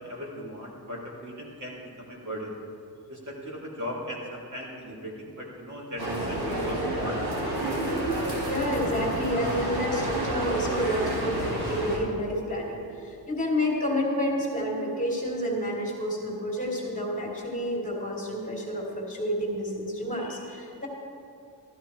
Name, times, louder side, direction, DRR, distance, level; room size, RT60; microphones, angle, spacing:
voice 1, 0.0-2.6 3.1-7.7, equal, 50° right, -4 dB, 2.8 m, -38 dB
sound 1, 6.0-12.0, right 1 dB, 80° right, 2.9 m, -29 dB
voice 2, 8.4-20.9, equal, 20° left, -2 dB, 2.6 m, -29 dB
13.5 x 13.5 x 4.6 m, 2.5 s
wide cardioid pair, 145°, 38 cm